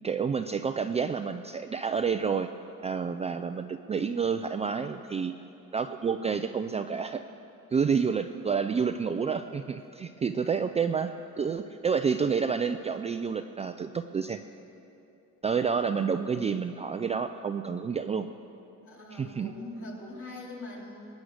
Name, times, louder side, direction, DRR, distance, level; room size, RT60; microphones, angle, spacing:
voice 1, 0.0-2.5 2.8-5.3 5.7-7.2 7.7-14.4 15.4-18.3 19.1-19.5, right 6 dB, 20° right, 7 dB, 0.4 m, -29 dB
voice 2, 18.8-21.1, left 1 dB, 45° left, -3 dB, 3.4 m, -42 dB
22.0 x 9.6 x 6.5 m, 2.8 s
cardioid pair, 150°, 30 cm